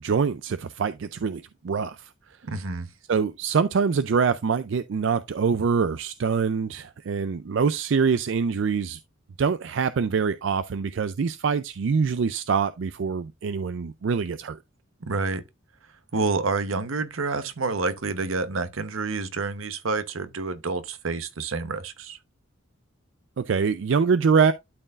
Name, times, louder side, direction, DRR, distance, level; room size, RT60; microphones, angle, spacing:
voice 1, 0.0-2.1 3.1-9.0 9.4-14.6 23.4-24.5, right 5 dB, 65° right, 0.4 m, -24 dB
voice 2, 2.4-2.9 15.0-15.4 16.1-22.2, right 3 dB, 80° right, 0.9 m, -28 dB
12.0 x 4.5 x 2.4 m
head